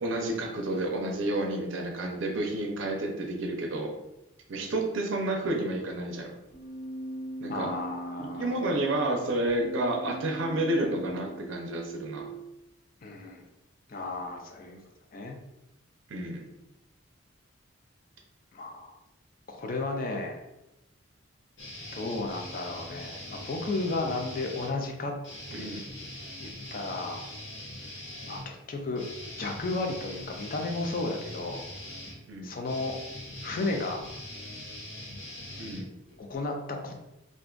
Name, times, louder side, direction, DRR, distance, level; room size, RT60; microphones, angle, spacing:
voice 1, 0.0-3.9 4.5-6.3 7.4-7.7 8.2-12.3 16.1-16.4 25.5-25.8 32.3-32.5 35.6-35.9, right 1 dB, 70° right, 1 dB, 0.5 m, -30 dB
Keyboard (musical), 6.5-12.5, right 1 dB, 85° left, 1.2 m, -40 dB
voice 2, 7.5-8.9 13.0-13.5 13.9-14.8 15.1-15.4 18.5-19.0 19.5-20.4 21.9-25.1 25.5-25.7 26.4-27.3 28.2-29.0 29.4-31.6 32.4-33.0 33.4-34.0 36.2-37.0, left 2 dB, 45° left, 3 dB, 0.4 m, -34 dB
sound 1, 21.6-24.7 25.2-36.4, left 1 dB, 60° left, 0.8 m, -42 dB
2.5 x 2.3 x 3.7 m, 0.93 s
head